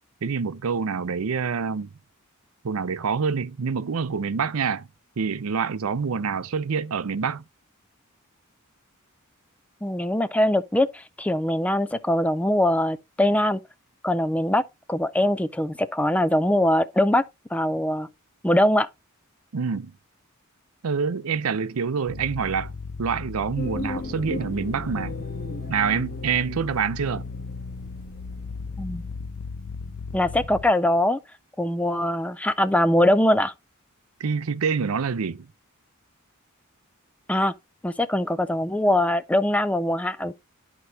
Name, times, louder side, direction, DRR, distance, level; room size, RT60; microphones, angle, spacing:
voice 1, 0.2-1.9 2.6-4.9 5.2-7.4 19.5-19.9 20.8-22.7 23.0-25.2 25.7-27.3 34.2-35.5, right 6 dB, 80° right, 0.6 m, -26 dB
voice 2, 9.8-13.6 14.0-14.6 14.9-17.2 17.5-18.1 18.4-18.9 28.8-29.0 30.1-31.2 31.6-33.5 37.3-37.5 37.8-40.3, left 1 dB, 5° left, 0.4 m, -22 dB
sound 1, 22.1-30.6, left 4 dB, 75° left, 0.7 m, -36 dB
sound 2, 23.6-28.9 29.2-29.3, left 3 dB, 45° left, 2.0 m, -38 dB
11.5 x 4.5 x 2.7 m
head